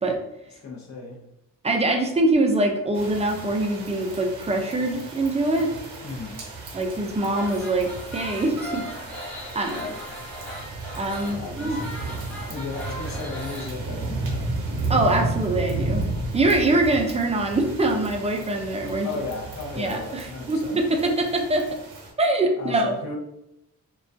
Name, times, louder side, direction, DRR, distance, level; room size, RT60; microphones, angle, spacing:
voice 1, 0.6-1.2 6.0-6.4 9.7-10.0 11.3-11.8 12.5-14.5 19.0-20.8 22.6-23.2, left 3 dB, 50° left, 0 dB, 0.6 m, -35 dB
voice 2, 1.6-5.7 6.7-8.8 9.5-9.8 11.0-11.9 14.9-16.0 16.3-19.1 19.8-21.8 22.2-22.9, right 2 dB, 20° right, 2 dB, 0.3 m, -23 dB
sound 1, 2.9-22.1, right 2 dB, 65° right, 0.7 m, -33 dB
sound 2, 7.4-13.7, left 1 dB, 5° left, 0.9 m, -38 dB
2.3 x 2.2 x 2.5 m, 0.84 s
cardioid pair, 75°, 35 cm